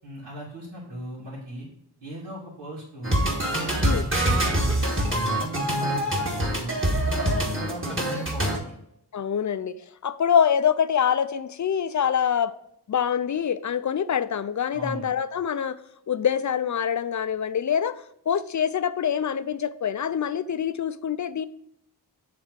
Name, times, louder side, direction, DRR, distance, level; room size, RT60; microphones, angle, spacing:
voice 1, 0.0-1.7 2.0-3.3 3.8-8.8 14.7-15.0, right 1 dB, 85° right, -9 dB, 2.7 m, -38 dB
sound 1, 3.0-8.6, right 1 dB, 30° right, 1.6 m, -24 dB
voice 2, 9.1-9.8 10.0-12.5 12.9-15.8 16.1-18.0 18.3-21.5, left 8 dB, 45° left, 14 dB, 0.4 m, -25 dB
7.4 x 3.5 x 4.7 m, 0.76 s
wide cardioid pair, 55°, 42 cm